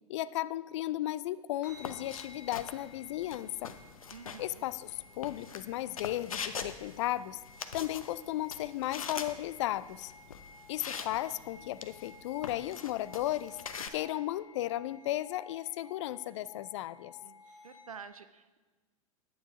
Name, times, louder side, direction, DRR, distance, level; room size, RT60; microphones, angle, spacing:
voice 1, 0.1-3.7 4.4-7.4 7.7-10.1 10.7-13.6 13.9-17.1, left 14 dB, 60° left, 18 dB, 0.4 m, -35 dB
sound 1, 1.6-18.1, left 3 dB, 5° right, 4.1 m, -56 dB
sound 2, 1.7-13.9, left 6 dB, 80° left, 0.8 m, -44 dB
voice 2, 4.1-4.6 17.2-17.4 17.6-18.6, right 6 dB, 85° right, 12 dB, 0.5 m, -49 dB
11.0 x 9.3 x 4.8 m, 1.3 s
figure-of-eight pair, 95°, 18 cm